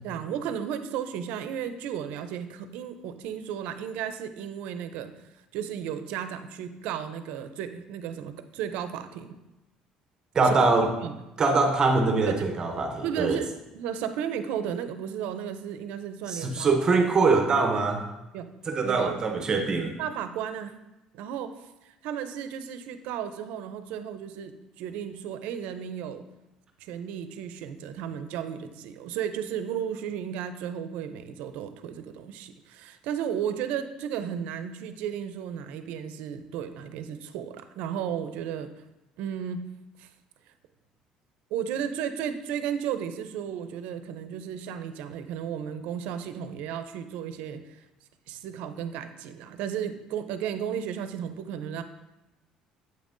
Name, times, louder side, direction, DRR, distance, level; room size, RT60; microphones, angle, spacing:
voice 1, 0.0-5.1 5.5-9.4 10.4-10.6 11.0-11.1 12.3-12.4 13.0-16.7 18.3-18.5 18.8-19.2 20.0-20.7 21.1-26.2 26.8-38.7 39.2-39.7 40.0-40.1 41.5-47.8 48.3-51.8, right 8 dB, 85° right, 10 dB, 0.4 m, -34 dB
voice 2, 10.3-10.9 11.4-13.4 16.3-18.0 18.7-19.9, right 3 dB, 30° right, 4 dB, 0.6 m, -23 dB
7.5 x 5.3 x 2.5 m, 0.98 s
cardioid pair, 125°, 2 cm